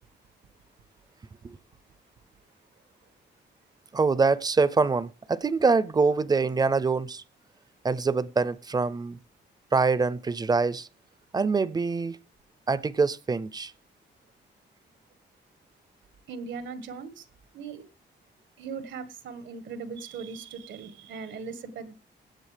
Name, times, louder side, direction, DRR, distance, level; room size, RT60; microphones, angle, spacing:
voice 1, 3.9-7.2 7.8-9.2 9.7-10.9 11.3-12.2 12.7-13.7, right 4 dB, 20° right, 0.4 m, -24 dB
voice 2, 16.3-17.3 17.5-17.8 18.6-21.9, right 5 dB, 85° right, 1.4 m, -39 dB
16.5 x 7.9 x 3.3 m
cardioid pair, 135°, 19 cm